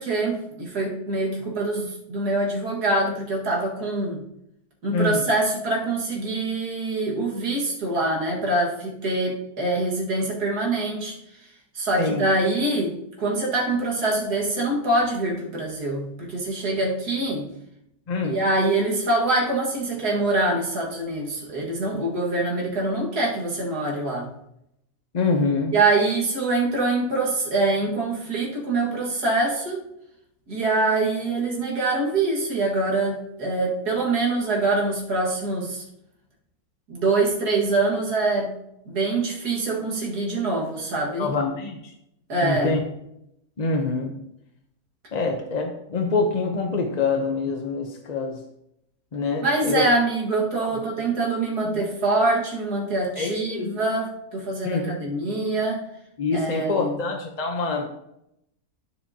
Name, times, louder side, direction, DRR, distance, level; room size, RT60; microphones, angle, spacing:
voice 1, 0.0-4.2 4.8-11.1 11.7-17.5 18.2-24.3 25.7-29.8 30.5-35.8 36.9-38.5 38.9-41.3 42.3-42.8 49.4-55.8 56.3-57.0, right 2 dB, 80° right, -3 dB, 2.4 m, -24 dB
voice 2, 18.1-18.4 25.1-25.7 41.2-41.9 42.4-42.8 43.6-44.1 45.1-48.4 49.1-49.9 50.6-50.7 51.6-51.8 53.2-53.8 54.6-55.0 56.2-57.9, left 4 dB, 40° left, 2 dB, 0.6 m, -25 dB
9.5 x 7.4 x 2.8 m, 0.80 s
omnidirectional pair, 1.7 m